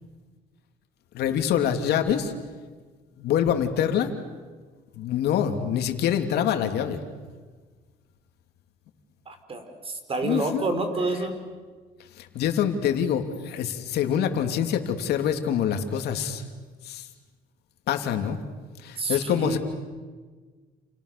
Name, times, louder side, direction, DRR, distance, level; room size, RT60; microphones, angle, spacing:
voice 1, 1.1-2.3 3.2-4.1 4.9-7.0 10.2-10.7 12.2-16.4 16.8-17.1 17.9-18.4 18.8-19.6, left 9 dB, 75° left, 6 dB, 2.9 m, -25 dB
voice 2, 9.3-9.6 10.1-11.3 19.0-19.6, right 2 dB, 35° right, 7 dB, 5.1 m, -28 dB
30.0 x 29.0 x 6.9 m, 1.4 s
cardioid pair, 110°, 17 cm